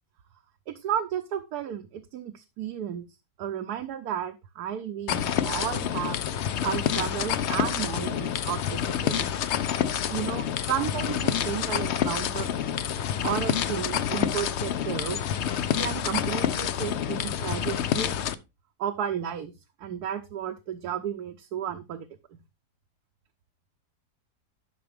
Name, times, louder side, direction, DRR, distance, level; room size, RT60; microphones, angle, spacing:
voice 1, 0.7-3.1 3.4-6.2 6.6-9.3 10.1-12.5 13.2-15.3 15.8-18.2 18.8-19.5 19.8-22.1, right 9 dB, 75° right, 5 dB, 1.3 m, -33 dB
sound 1, 5.1-18.3, left 9 dB, 60° left, 0.7 m, -28 dB
12.0 x 6.0 x 3.4 m, 0.25 s
omnidirectional pair, 1.7 m